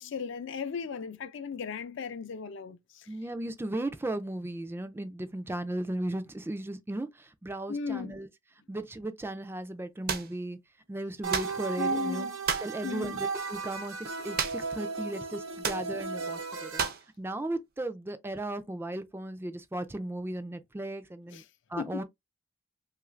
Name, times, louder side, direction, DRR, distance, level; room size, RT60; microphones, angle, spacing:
voice 1, 0.0-3.1 7.7-8.2 11.7-12.4 12.8-13.2 21.3-21.4 21.8-22.0, left 6 dB, 65° left, 0.4 m, -36 dB
voice 2, 3.1-8.3 8.7-10.6 10.9-12.3 12.6-16.8 17.2-21.4 21.7-22.0, right 1 dB, 10° right, 0.3 m, -36 dB
sound 1, 10.1-10.3 11.3-11.6 12.5-12.8 14.4-14.8 15.0-15.1 15.6-15.9 16.8-17.1, right 6 dB, 50° right, 0.6 m, -31 dB
sound 2, 11.2-16.9, right 4 dB, 85° right, 0.8 m, -35 dB
3.1 x 2.4 x 3.1 m
head